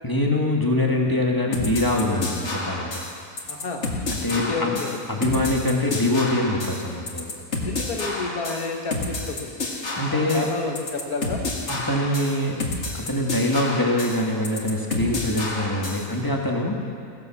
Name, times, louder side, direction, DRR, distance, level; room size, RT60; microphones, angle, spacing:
voice 1, 0.0-3.0 4.1-4.8 5.1-7.3 10.0-10.5 11.7-12.6 12.9-16.8, left 1 dB, 15° left, -1 dB, 1.6 m, -24 dB
sound 1, 1.5-16.1, left 2 dB, 50° left, 2.0 m, -30 dB
voice 2, 3.5-3.8 4.5-4.9 7.7-9.7 10.1-11.4, left 3 dB, 80° left, 3 dB, 1.9 m, -30 dB
17.0 x 11.0 x 7.2 m, 2.3 s
omnidirectional pair, 1.6 m